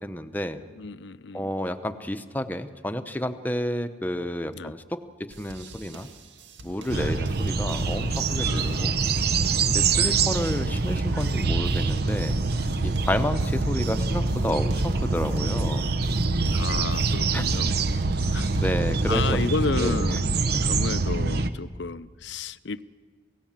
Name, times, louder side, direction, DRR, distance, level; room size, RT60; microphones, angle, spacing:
voice 1, 0.0-0.6 1.3-6.1 6.6-8.9 9.7-12.4 12.8-15.9 17.3-17.5 18.6-19.4 19.8-20.0, equal, 10° left, 8 dB, 0.9 m, -30 dB
voice 2, 0.8-1.5 4.5-4.7 6.9-7.2 8.4-9.1 9.9-10.2 13.1-13.3 16.5-17.8 18.3-18.5 19.1-20.3 20.6-22.8, left 4 dB, 65° left, 16 dB, 0.6 m, -32 dB
sound 1, 5.3-19.7, right 2 dB, 70° right, 2.3 m, -46 dB
sound 2, 6.9-21.5, right 3 dB, 55° right, 1.0 m, -25 dB
28.0 x 17.5 x 7.5 m, 1.5 s
head